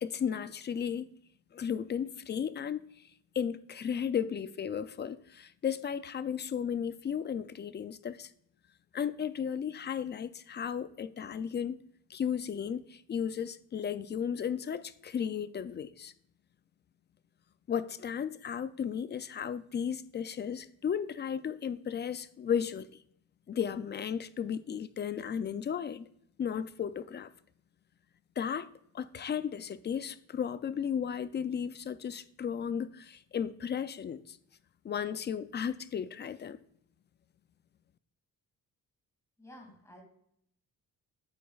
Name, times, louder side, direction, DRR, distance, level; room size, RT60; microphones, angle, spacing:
voice 1, 0.0-1.1 1.5-2.8 3.4-8.3 8.9-11.8 12.1-16.1 17.7-22.9 23.5-26.1 26.4-27.3 28.4-28.7 28.9-34.4 34.8-36.6, left 8 dB, 30° left, 0.4 m, -34 dB
voice 2, 39.4-40.0, left 1 dB, 10° left, 2.4 m, -52 dB
8.7 x 8.4 x 2.4 m
cardioid pair, 130°, 34 cm